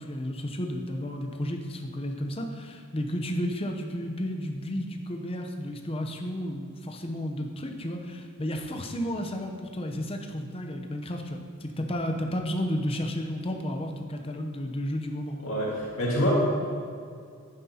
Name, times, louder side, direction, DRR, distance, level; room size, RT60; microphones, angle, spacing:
voice 1, 0.0-15.4, equal, 25° left, 3 dB, 0.8 m, -32 dB
voice 2, 15.4-16.3, equal, 70° left, -5 dB, 2.0 m, -26 dB
11.0 x 9.6 x 2.9 m, 2.2 s
head